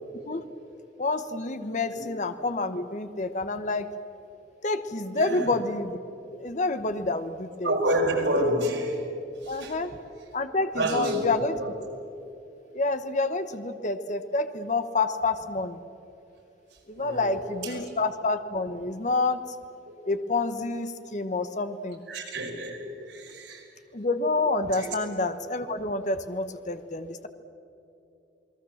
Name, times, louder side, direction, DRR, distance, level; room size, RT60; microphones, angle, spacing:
voice 1, 1.0-3.9 4.6-6.0 6.4-7.7 9.5-10.0 10.3-11.6 12.7-15.8 16.9-19.4 20.1-22.0 23.9-27.3, left 3 dB, 40° left, 10 dB, 1.1 m, -28 dB
voice 2, 5.1-5.5 7.6-9.0 9.4-9.8 10.7-11.7 17.0-18.0 19.8-20.1 22.1-23.7 24.7-24.9, equal, 85° right, 0 dB, 5.1 m, -29 dB
28.0 x 20.0 x 7.3 m, 2.8 s
head